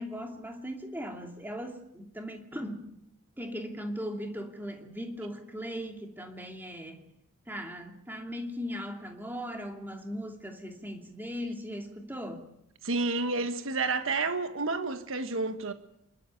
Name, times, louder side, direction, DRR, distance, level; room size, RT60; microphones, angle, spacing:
voice 1, 0.0-2.9 3.4-7.1 7.5-12.5, equal, 10° right, 2.7 m, -38 dB
voice 2, 12.8-15.7, right 3 dB, 65° right, 1.4 m, -30 dB
28.0 x 12.5 x 9.2 m
head